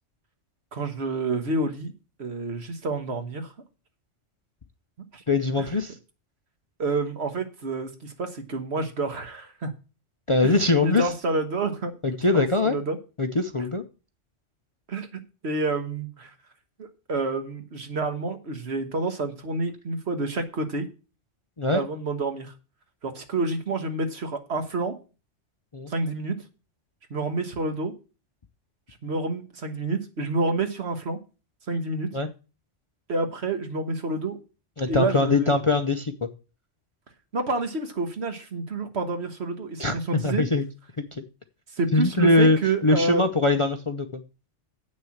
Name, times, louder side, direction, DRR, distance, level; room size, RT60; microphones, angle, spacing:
voice 1, 0.7-1.9 2.2-3.5 5.1-5.2 5.6-5.7 6.8-9.7 10.4-10.6 10.8-13.0 14.9-16.3 16.8-20.9 21.7-22.5 23.0-24.9 25.9-26.4 27.1-27.9 29.0-31.2 31.7-32.1 33.1-34.4 34.9-35.5 37.3-40.4 41.7-43.3, right 3 dB, 60° right, 1.6 m, -28 dB
voice 2, 5.3-6.0 10.3-11.0 12.0-12.8 13.2-13.8 21.6-21.8 25.7-25.9 32.1-32.3 34.8-36.3 39.8-40.6 41.1-41.2 41.9-42.6 42.8-44.2, left 2 dB, 35° left, 0.6 m, -22 dB
8.0 x 6.4 x 7.2 m
omnidirectional pair, 1.3 m